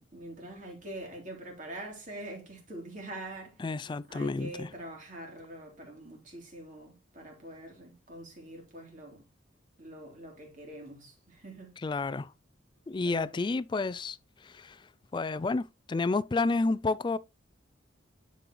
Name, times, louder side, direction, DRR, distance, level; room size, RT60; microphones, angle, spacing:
voice 1, 0.0-3.6 4.1-9.2 9.8-11.7 13.0-13.4, right 1 dB, 40° right, 3.2 m, -44 dB
voice 2, 3.6-4.7 11.8-12.3 12.9-17.2, left 3 dB, 25° left, 0.3 m, -31 dB
11.0 x 5.3 x 3.0 m
head